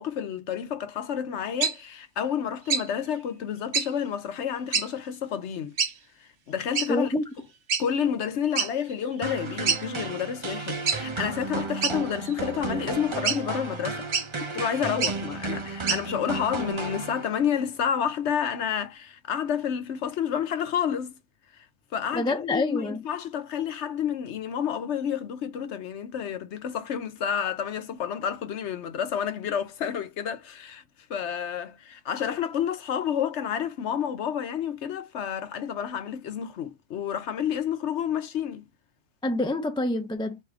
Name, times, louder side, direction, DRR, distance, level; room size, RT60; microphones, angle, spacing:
voice 1, 0.0-5.8 6.5-7.1 7.8-14.1 14.5-21.2 21.5-21.6 21.9-30.8 31.1-38.7, left 8 dB, 70° left, 1.0 m, -30 dB
sound 1, 1.6-1.7 2.7-2.9 3.7-3.9 4.7-4.9 5.8-5.9 6.7-6.9 7.7-7.8 8.5-8.7 9.1-9.2 9.7-9.8 10.9-11.0 11.8-12.3 13.2-13.4 14.1-14.3 14.9-15.2 15.9-16.0, right 6 dB, 50° right, 1.0 m, -26 dB
voice 2, 6.9-7.2 22.1-23.0 39.2-40.4, left 2 dB, 5° left, 0.5 m, -27 dB
sound 2, 9.2-17.6, right 3 dB, 30° right, 0.7 m, -34 dB
4.8 x 2.7 x 3.6 m
omnidirectional pair, 1.3 m